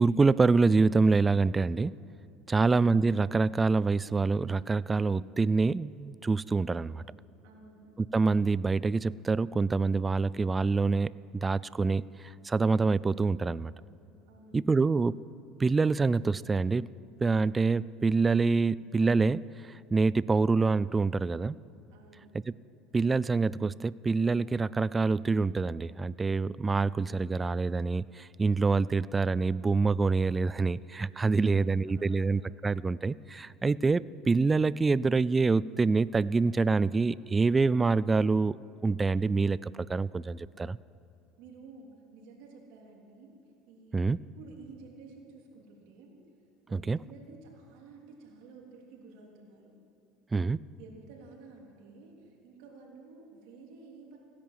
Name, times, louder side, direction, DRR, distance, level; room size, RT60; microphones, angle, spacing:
voice 1, 0.0-1.9 2.5-7.0 8.1-12.0 12.4-13.7 14.5-15.2 15.6-16.9 17.2-19.4 19.9-21.6 22.9-38.6 38.8-40.8 43.9-44.2 46.7-47.0 50.3-50.6, right 4 dB, 20° right, 20 dB, 0.3 m, -26 dB
voice 2, 7.4-7.9 14.3-14.7 21.9-22.3 31.2-32.4 40.4-40.6 41.4-43.3 43.7-46.2 46.7-49.7 50.8-54.2, right 4 dB, 75° right, -1 dB, 3.3 m, -52 dB
16.5 x 10.5 x 7.6 m, 2.6 s
supercardioid pair, 105°, 0 cm